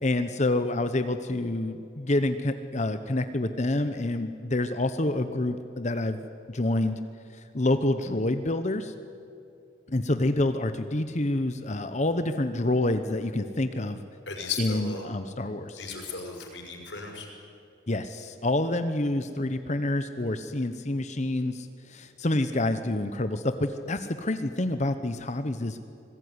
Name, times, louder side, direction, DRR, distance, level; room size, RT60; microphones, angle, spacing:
voice 1, 0.0-6.2 6.5-7.0 7.3-8.9 9.9-14.0 14.6-15.8 17.9-25.8, left 2 dB, 35° left, 9 dB, 0.9 m, -27 dB
voice 2, 14.3-15.2 15.7-17.3, left 4 dB, 65° left, 2 dB, 5.8 m, -36 dB
26.5 x 20.0 x 9.7 m, 2.6 s
head